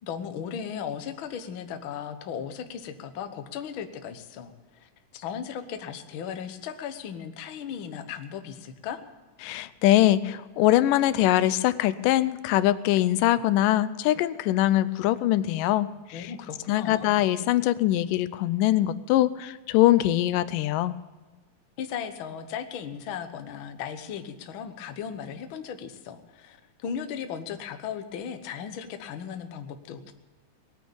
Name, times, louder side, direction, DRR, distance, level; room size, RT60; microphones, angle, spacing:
voice 1, 0.0-9.0 16.1-17.2 21.8-30.1, left 8 dB, 60° left, 7 dB, 1.3 m, -36 dB
voice 2, 9.4-16.3 16.7-21.0, left 14 dB, 90° left, 15 dB, 2.3 m, -23 dB
20.5 x 9.3 x 7.0 m, 1.3 s
omnidirectional pair, 3.7 m